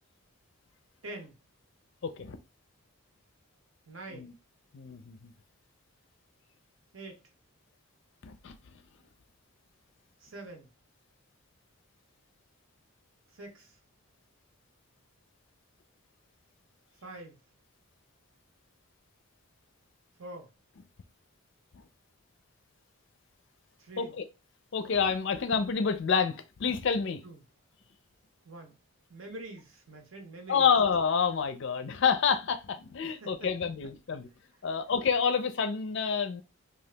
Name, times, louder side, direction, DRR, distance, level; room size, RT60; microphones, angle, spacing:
voice 1, 1.0-1.4 3.9-4.3 6.9-7.2 10.2-10.7 13.3-13.8 17.0-17.4 20.2-20.5 23.8-24.1 27.2-27.4 28.4-28.8 29.1-30.7 33.0-33.5, right 2 dB, 65° right, 0.8 m, -45 dB
voice 2, 2.0-2.4 4.1-4.3 4.7-5.3 8.2-8.6 24.0-24.2 24.7-27.2 30.5-34.3 34.6-36.4, left 6 dB, 55° left, 0.4 m, -28 dB
2.8 x 2.3 x 3.3 m
head